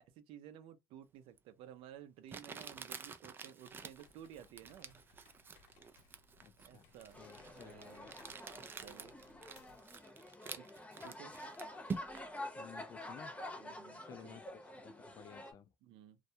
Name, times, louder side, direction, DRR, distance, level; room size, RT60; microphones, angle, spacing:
voice 1, 0.0-5.0 6.6-8.1 8.5-9.1 10.5-11.4 13.6-14.4 15.8-16.2, right 10 dB, 70° right, 0.5 m, -55 dB
Crumpling crinkling, 1.4-1.5 2.3-12.4, right 5 dB, 25° right, 0.3 m, -48 dB
sound 1, 3.6-10.0, left 4 dB, 80° left, 0.7 m, -67 dB
voice 2, 6.4-8.2 12.6-13.4 14.0-15.7, left 8 dB, 40° left, 0.4 m, -55 dB
sound 2, 7.1-15.5, left 1 dB, 15° left, 0.8 m, -49 dB
2.3 x 2.1 x 2.7 m
cardioid pair, 115°, 9 cm